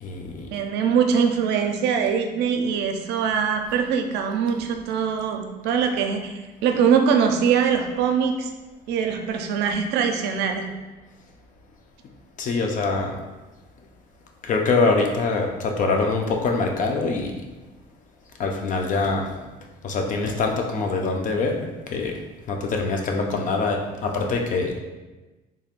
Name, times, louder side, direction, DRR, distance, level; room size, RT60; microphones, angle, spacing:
voice 1, 0.0-0.5 12.4-13.1 14.4-17.3 18.4-19.3 19.8-22.2 22.5-24.7, left 3 dB, 50° left, 2 dB, 0.6 m, -24 dB
voice 2, 0.5-6.3 6.6-8.5 8.9-10.7, right 6 dB, 85° right, 5 dB, 0.5 m, -22 dB
3.5 x 3.5 x 2.4 m, 1.2 s
cardioid pair, 110°, 17 cm